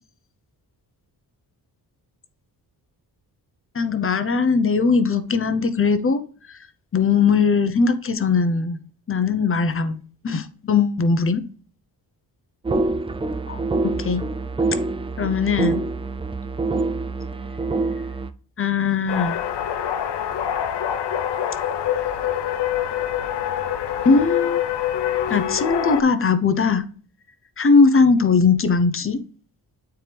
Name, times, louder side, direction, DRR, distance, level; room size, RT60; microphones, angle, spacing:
voice 1, 3.7-6.2 6.5-6.6 6.9-8.8 9.1-11.4 13.5-14.2 15.2-15.9 18.6-19.4 24.0-24.6 25.3-26.9 27.6-29.2, left 4 dB, 35° left, 0.8 m, -20 dB
sound 1, 12.6-18.3, right 3 dB, 15° right, 0.3 m, -25 dB
sound 2, 19.1-26.0, left 10 dB, 90° left, 0.8 m, -25 dB
9.1 x 4.6 x 3.4 m
wide cardioid pair, 130°, 40 cm